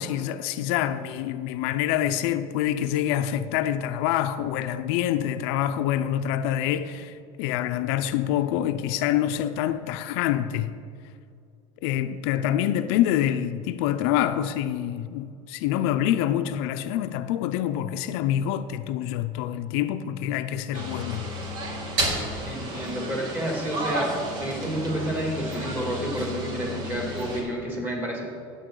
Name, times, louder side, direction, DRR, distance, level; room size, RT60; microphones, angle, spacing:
voice 1, 0.0-10.7 11.8-21.3, left 11 dB, 75° left, 0.5 m, -26 dB
sound 1, 20.7-27.4, right 1 dB, 70° right, 2.6 m, -32 dB
voice 2, 22.5-28.2, equal, 15° right, 2.4 m, -30 dB
14.0 x 8.8 x 3.8 m
cardioid pair, 145°, 14 cm